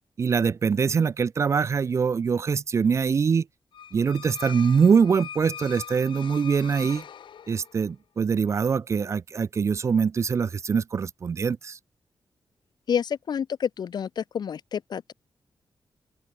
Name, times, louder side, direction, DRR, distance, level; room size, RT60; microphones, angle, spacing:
voice 1, 0.2-3.5 3.9-7.0 7.5-11.8, right 6 dB, 40° right, 0.3 m, -23 dB
sound 1, 3.7-7.9, left 8 dB, 80° left, 2.5 m, -42 dB
voice 2, 12.9-15.1, left 7 dB, 60° left, 0.9 m, -29 dB
open air
wide cardioid pair, 155°, 8 cm